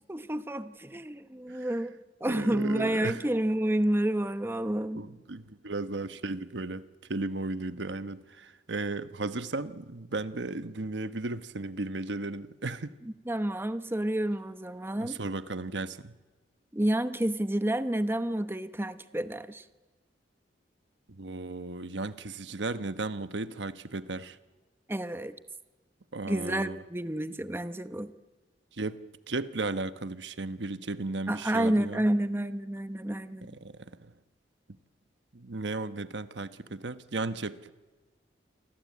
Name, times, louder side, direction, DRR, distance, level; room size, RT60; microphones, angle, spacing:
voice 1, 0.0-1.9 2.2-5.1 13.0-15.2 16.7-19.6 24.9-25.3 26.3-28.1 31.3-33.6, right 1 dB, 15° right, 0.9 m, -30 dB
voice 2, 2.3-3.2 4.9-6.8 7.1-12.9 15.0-16.1 21.1-24.4 26.1-26.8 28.8-29.0 29.3-32.0 33.6-33.7 34.0-34.1 35.3-37.7, right 3 dB, 85° right, 1.2 m, -35 dB
28.5 x 23.5 x 8.5 m
head